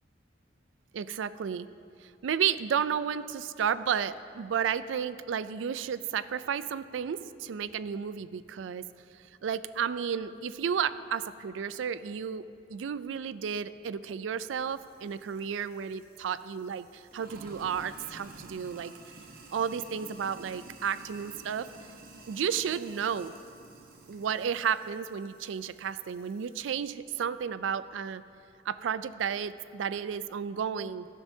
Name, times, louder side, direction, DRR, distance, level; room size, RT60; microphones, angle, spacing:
voice 1, 0.9-1.7 2.0-8.8 9.4-12.4 12.7-18.9 19.5-21.7 22.3-23.3 24.1-28.2 28.7-31.1, right 7 dB, 85° right, 15 dB, 0.4 m, -32 dB
Sink (filling or washing), 14.5-26.9, right 3 dB, 55° right, 1.0 m, -51 dB
13.5 x 12.5 x 2.7 m, 2.5 s
head